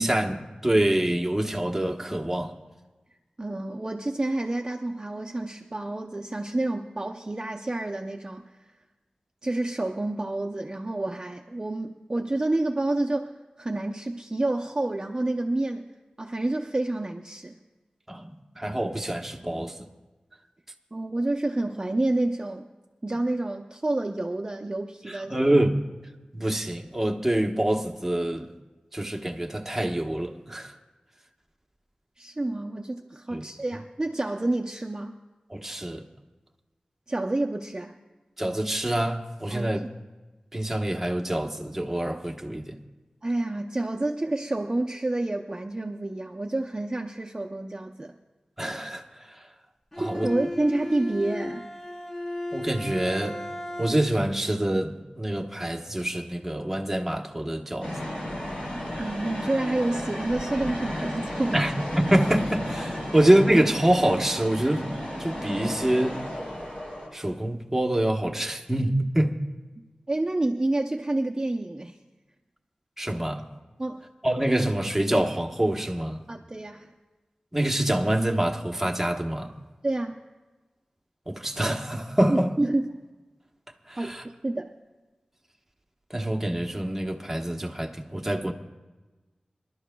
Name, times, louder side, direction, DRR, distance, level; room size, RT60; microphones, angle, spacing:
voice 1, 0.0-2.6 18.1-19.9 25.1-25.8 26.3-28.5 28.9-30.8 33.3-33.5 35.5-36.0 38.4-39.8 40.5-42.8 48.6-49.5 50.0-50.3 52.5-53.4 53.8-58.0 61.5-61.7 62.0-64.9 65.2-66.2 67.1-69.4 73.0-73.4 74.2-76.2 77.5-79.5 81.3-82.5 83.9-84.2 86.1-88.5, right 1 dB, 10° right, 1.1 m, -26 dB
voice 2, 3.4-8.4 9.4-15.9 16.2-17.6 20.9-22.7 23.0-25.4 32.2-35.2 37.1-37.9 39.5-39.7 43.2-48.2 50.0-51.7 59.0-61.6 70.1-72.0 73.8-74.0 76.3-76.9 79.8-80.2 82.3-82.9 84.0-84.7, right 2 dB, 30° right, 0.6 m, -29 dB
Bowed string instrument, 49.9-54.3, left 1 dB, 20° left, 0.9 m, -35 dB
sound 1, 57.8-67.1, equal, 50° left, 4.0 m, -33 dB
27.0 x 12.0 x 2.3 m
wide cardioid pair, 80°, 2 cm